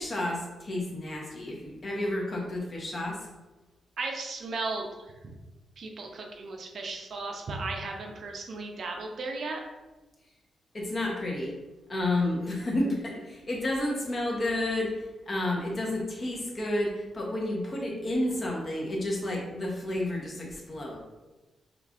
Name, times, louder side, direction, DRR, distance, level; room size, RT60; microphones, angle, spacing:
voice 1, 0.0-3.3 10.7-11.5 11.9-21.0, left 1 dB, 30° left, -2 dB, 0.9 m, -31 dB
voice 2, 4.0-5.1 5.8-9.6, right 3 dB, 55° right, 2 dB, 0.5 m, -35 dB
5.0 x 3.1 x 2.5 m, 1.1 s
wide cardioid pair, 145°, 0 cm